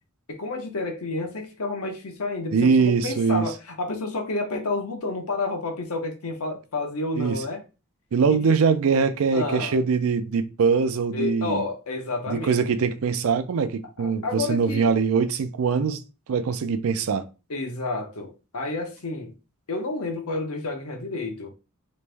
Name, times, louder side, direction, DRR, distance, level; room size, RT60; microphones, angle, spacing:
voice 1, 0.3-7.6 8.3-8.5 9.3-9.8 11.1-12.8 14.0-14.9 17.5-19.3 19.7-21.5, left 2 dB, 80° left, 0.9 m, -30 dB
voice 2, 2.5-3.5 7.2-7.4 8.1-11.6 12.3-16.0 16.3-17.2, right 5 dB, 65° right, 0.4 m, -22 dB
3.1 x 2.5 x 3.3 m
head